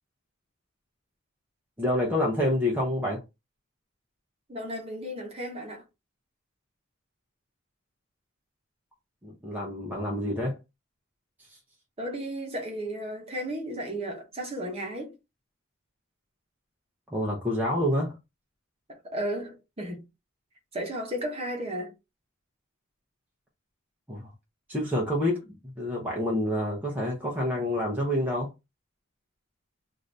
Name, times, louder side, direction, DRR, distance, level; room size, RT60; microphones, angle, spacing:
voice 1, 1.8-3.2 9.2-10.6 17.1-18.1 24.1-24.3 24.7-28.5, left 1 dB, 10° right, 0.6 m, -28 dB
voice 2, 4.5-5.8 12.0-15.1 18.9-20.0 20.7-21.9, right 1 dB, 30° right, 0.9 m, -34 dB
2.6 x 2.6 x 3.3 m
head